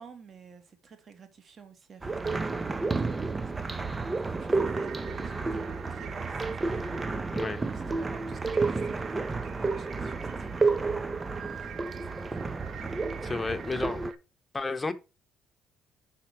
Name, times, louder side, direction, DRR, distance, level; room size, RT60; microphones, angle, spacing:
voice 1, 0.0-12.5, right 6 dB, 45° right, 1.3 m, -52 dB
sound 1, 2.0-14.1, right 3 dB, 20° right, 0.5 m, -31 dB
sound 2, 4.6-14.2, right 9 dB, 60° right, 0.7 m, -48 dB
voice 2, 7.3-7.7 13.2-14.0 14.5-14.9, left 3 dB, 20° left, 0.8 m, -32 dB
5.7 x 4.2 x 4.7 m
cardioid pair, 90°, 0 cm